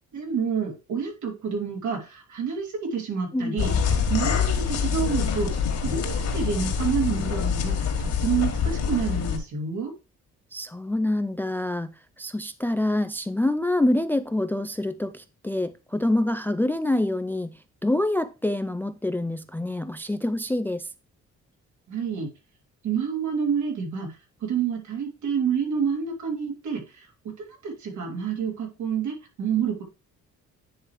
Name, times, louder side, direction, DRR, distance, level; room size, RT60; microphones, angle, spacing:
voice 1, 0.1-3.7 4.1-9.9 21.9-22.3 22.8-29.8, right 7 dB, 70° right, 3.0 m, -28 dB
sound 1, 3.6-9.4, left 6 dB, 60° left, 2.1 m, -25 dB
voice 2, 10.5-11.9 12.2-17.5 17.8-20.9, left 1 dB, 5° left, 0.4 m, -26 dB
9.8 x 3.3 x 4.6 m
cardioid pair, 90°, 30 cm